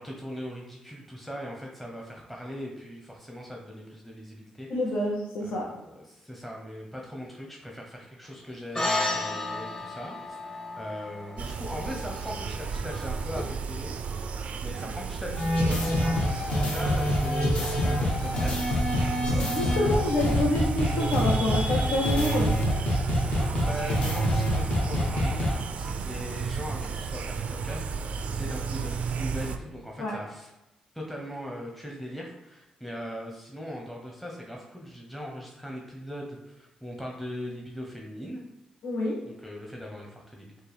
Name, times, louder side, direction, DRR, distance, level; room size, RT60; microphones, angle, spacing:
voice 1, 0.0-4.7 5.4-13.9 14.6-18.8 19.6-20.2 23.2-30.5 30.9-38.4 39.2-40.6, equal, 5° left, -1 dB, 0.8 m, -40 dB
voice 2, 4.7-5.7 19.4-22.5 30.0-30.1 38.8-39.2, left 1 dB, 80° left, -3 dB, 0.6 m, -27 dB
sound 1, 8.7-13.4, left 2 dB, 25° left, 1.1 m, -33 dB
sound 2, 11.4-29.6, right 5 dB, 65° right, 0.3 m, -33 dB
sound 3, 15.3-25.5, left 1 dB, 50° left, 1.0 m, -26 dB
4.3 x 2.2 x 3.4 m, 0.95 s
supercardioid pair, 60°, 2 cm